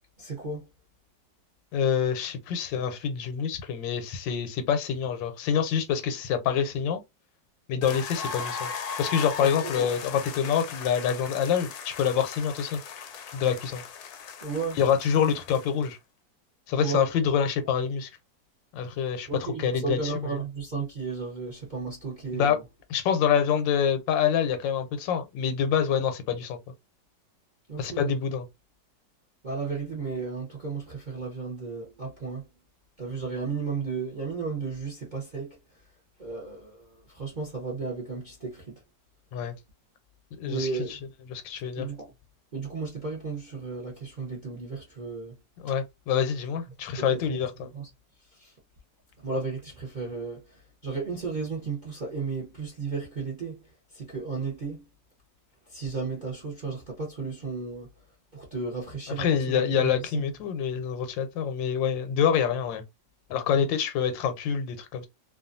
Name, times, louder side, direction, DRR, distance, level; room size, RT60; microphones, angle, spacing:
voice 1, 0.2-0.7 9.4-9.5 9.7-9.9 14.4-14.8 16.8-17.1 19.3-22.6 27.7-28.2 29.4-32.5 33.0-35.8 36.2-38.8 40.4-41.0 41.7-42.1 42.5-45.4 47.0-47.4 47.7-47.9 48.2-48.6 49.2-54.8 55.7-57.9 58.3-60.2, right 4 dB, 45° right, 0.6 m, -34 dB
voice 2, 1.7-7.0 7.7-8.7 9.0-12.8 13.3-13.8 14.8-16.0 16.7-18.1 18.7-20.1 22.3-22.6 22.9-26.6 27.8-28.4 39.3-39.5 40.3-41.0 41.3-41.9 45.6-47.7 59.2-62.8 63.3-65.1, left 7 dB, 90° left, 1.3 m, -26 dB
sound 1, 7.8-15.9, left 6 dB, 70° left, 0.9 m, -38 dB
2.9 x 2.3 x 2.5 m
omnidirectional pair, 2.0 m